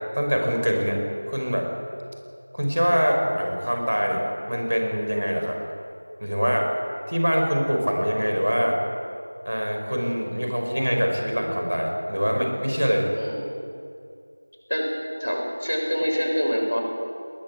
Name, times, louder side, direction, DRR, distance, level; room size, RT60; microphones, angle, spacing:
voice 1, 0.1-1.0 1.3-1.7 2.5-4.2 4.5-5.6 6.2-6.7 7.1-8.8 9.5-13.1, equal, 55° right, 2 dB, 5.6 m, -24 dB
voice 2, 15.2-16.8, equal, 80° left, 0 dB, 7.5 m, -25 dB
21.5 x 20.0 x 8.1 m, 2.4 s
figure-of-eight pair, 175°, 0 cm